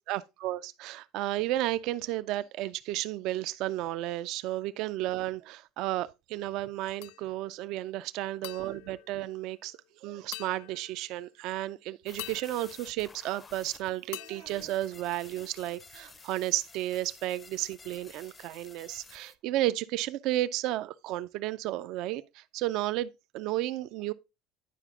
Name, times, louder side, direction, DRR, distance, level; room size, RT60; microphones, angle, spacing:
voice 1, 0.1-24.1, right 15 dB, 65° right, 0.4 m, -33 dB
sound 1, 7.0-7.6 8.4-9.9 10.3-11.3 12.2-13.7 14.1-15.5, left 17 dB, 90° left, 0.3 m, -47 dB
sound 2, 12.1-19.3, left 4 dB, 20° left, 0.5 m, -53 dB
9.9 x 5.0 x 3.6 m
cardioid pair, 140°, 0 cm